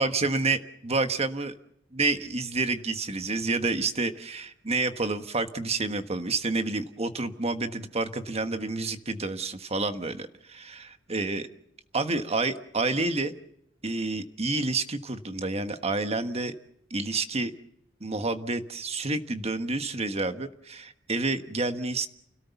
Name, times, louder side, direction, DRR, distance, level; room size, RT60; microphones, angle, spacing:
voice 1, 0.0-1.5 1.9-11.5 11.9-13.3 13.8-16.6 16.9-17.5 18.0-22.1, right 3 dB, 35° right, 9 dB, 1.4 m, -29 dB
29.0 x 18.0 x 7.1 m, 0.75 s
head